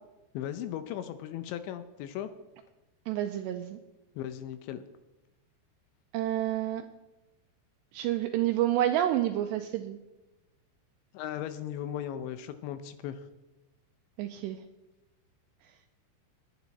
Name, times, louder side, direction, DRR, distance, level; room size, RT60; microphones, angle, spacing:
voice 1, 0.3-2.3 4.2-4.8 11.1-13.2, left 10 dB, 80° left, 10 dB, 2.8 m, -37 dB
voice 2, 3.1-3.8 6.1-6.8 7.9-10.0 14.2-14.6, right 12 dB, 85° right, 6 dB, 2.6 m, -29 dB
20.5 x 8.9 x 4.1 m, 1.0 s
omnidirectional pair, 5.4 m